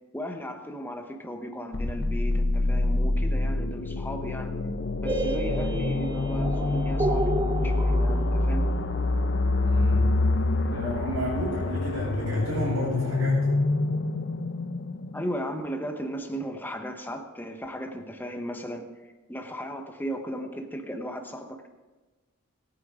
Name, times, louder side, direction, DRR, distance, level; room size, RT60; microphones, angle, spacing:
voice 1, 0.1-4.5 5.0-7.3 7.6-8.6 15.1-21.7, equal, 10° left, 4 dB, 1.1 m, -36 dB
sound 1, 1.7-15.5, left 2 dB, 55° left, 0.7 m, -26 dB
sound 2, 5.1-10.8, right 2 dB, 20° right, 0.7 m, -33 dB
voice 2, 9.7-10.1 10.7-13.5, right 1 dB, 85° right, -8 dB, 4.4 m, -32 dB
20.0 x 9.4 x 3.8 m, 1.2 s
head